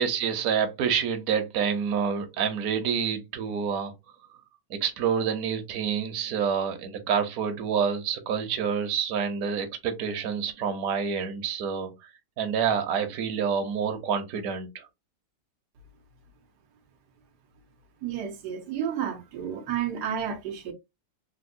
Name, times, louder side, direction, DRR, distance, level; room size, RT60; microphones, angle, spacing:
voice 1, 0.0-3.9 4.7-11.9 12.4-14.9, right 7 dB, 65° right, 1.2 m, -27 dB
voice 2, 18.0-20.7, right 9 dB, 90° right, 1.2 m, -31 dB
3.6 x 2.5 x 2.5 m
omnidirectional pair, 1.7 m